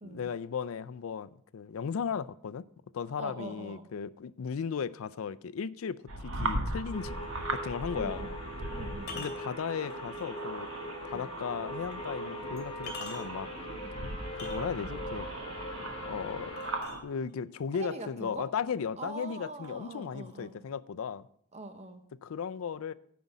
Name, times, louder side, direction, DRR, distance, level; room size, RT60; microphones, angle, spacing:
voice 1, 0.0-2.6 2.9-7.1 7.5-8.3 9.1-10.7 11.0-13.5 14.4-15.3 16.0-16.6 17.0-21.3 22.2-22.9, left 6 dB, 75° left, 0.4 m, -36 dB
voice 2, 3.2-3.9 7.9-8.4 8.7-9.3 11.1-11.3 13.8-14.3 17.7-18.5 19.0-20.6 21.5-22.0, right 2 dB, 30° right, 0.8 m, -43 dB
sound 1, 6.1-17.0, right 2 dB, 70° right, 1.3 m, -39 dB
sound 2, 6.9-16.8, equal, 25° left, 2.1 m, -41 dB
sound 3, 7.2-7.4 9.0-10.4 10.9-11.0 11.9-12.0 12.6-13.5 14.2-15.0 16.6-17.5 18.4-18.5 18.9-19.4 19.6-20.6, left 3 dB, 50° left, 2.1 m, -45 dB
9.4 x 5.2 x 7.1 m
head